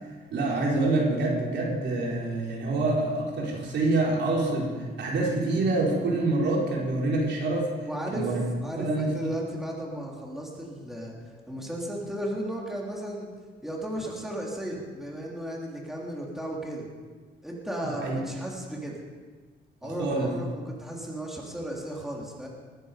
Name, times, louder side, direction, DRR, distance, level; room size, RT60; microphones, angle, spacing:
voice 1, 0.3-7.7 8.1-8.4 8.8-9.3 18.0-18.2 19.8-20.3, right 2 dB, 65° right, -2 dB, 4.4 m, -26 dB
voice 2, 7.9-8.3 8.6-11.1 11.5-13.3 13.6-16.9 17.4-19.0 19.8-22.5, right 1 dB, ahead, -3 dB, 3.3 m, -35 dB
20.5 x 10.5 x 5.2 m, 1.4 s
cardioid pair, 90°, 20 cm